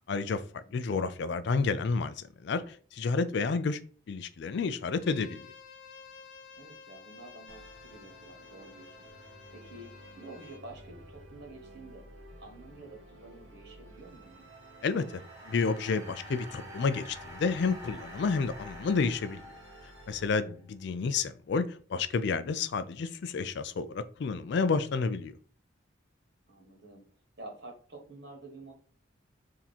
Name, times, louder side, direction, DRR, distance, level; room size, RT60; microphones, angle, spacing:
voice 1, 0.1-3.8 4.1-5.5 14.8-15.1 15.5-19.4 20.1-25.3, left 4 dB, 60° left, 0.4 m, -30 dB
Bowed string instrument, 5.0-10.6, left 5 dB, 85° left, 1.2 m, -52 dB
voice 2, 6.6-9.9 10.1-12.0 12.4-14.5 20.4-20.6 26.5-27.0 27.4-28.7, right 2 dB, 55° right, 1.4 m, -49 dB
Musical instrument, 7.5-20.3, right 1 dB, 90° right, 1.7 m, -52 dB
sound 1, 14.1-20.5, equal, 15° right, 0.7 m, -49 dB
3.6 x 2.9 x 4.1 m
head